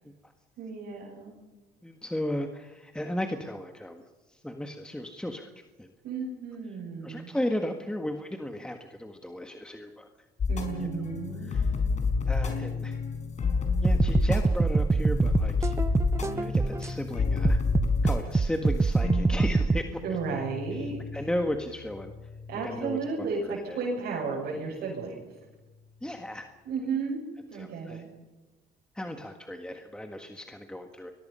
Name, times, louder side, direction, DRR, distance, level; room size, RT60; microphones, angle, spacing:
voice 1, 0.6-1.3 6.0-7.3 10.5-11.5 20.0-21.0 22.5-25.2 26.6-27.2 27.5-28.1, right 4 dB, 70° right, -3 dB, 6.5 m, -33 dB
voice 2, 1.8-4.0 4.3-5.5 5.8-5.9 7.0-10.1 10.8-10.9 11.4-11.7 12.3-13.0 13.8-15.8 16.3-17.6 18.0-20.0 20.7-20.9 21.1-22.1 22.6-23.8 26.0-26.5 27.5-28.0 28.9-31.1, left 1 dB, 5° left, 5 dB, 1.6 m, -35 dB
sound 1, 10.4-23.0, left 4 dB, 45° left, 4.8 m, -30 dB
sound 2, 13.8-16.9 17.4-19.8, right 4 dB, 15° right, 0.7 m, -25 dB
29.5 x 21.5 x 5.7 m, 1.1 s
cardioid pair, 110°, 17 cm